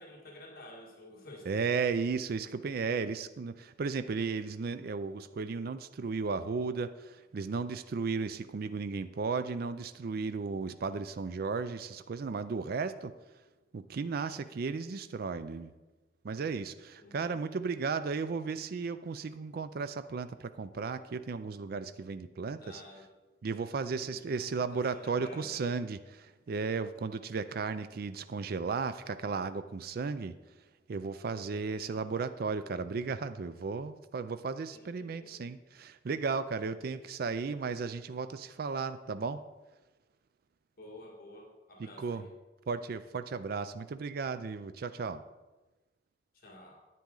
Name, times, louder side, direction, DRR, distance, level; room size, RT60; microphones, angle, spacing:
voice 1, 0.0-1.6 14.0-14.4 17.0-17.6 22.6-23.1 23.9-25.7 31.5-32.0 34.7-35.5 40.8-42.3 46.3-46.8, left 1 dB, 55° left, -1 dB, 1.7 m, -52 dB
voice 2, 1.5-13.1 13.7-15.7 16.2-22.8 23.4-30.3 30.9-39.4 42.0-42.3 42.7-45.2, right 4 dB, 55° right, 12 dB, 0.4 m, -35 dB
10.0 x 9.1 x 3.8 m, 1.1 s
head